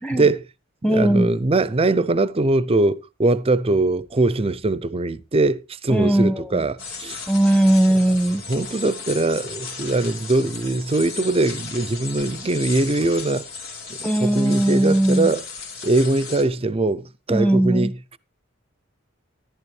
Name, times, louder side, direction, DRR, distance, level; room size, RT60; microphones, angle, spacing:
voice 1, 0.1-0.4 0.8-7.3 8.5-13.5 13.9-15.4 15.8-18.2, right 2 dB, 30° right, 0.6 m, -22 dB
voice 2, 0.8-1.3 5.9-6.4 7.3-8.4 14.0-15.3 17.3-17.9, right 1 dB, 5° left, 1.1 m, -18 dB
sound 1, 6.8-16.4, left 5 dB, 85° left, 2.5 m, -36 dB
13.5 x 11.5 x 3.2 m
head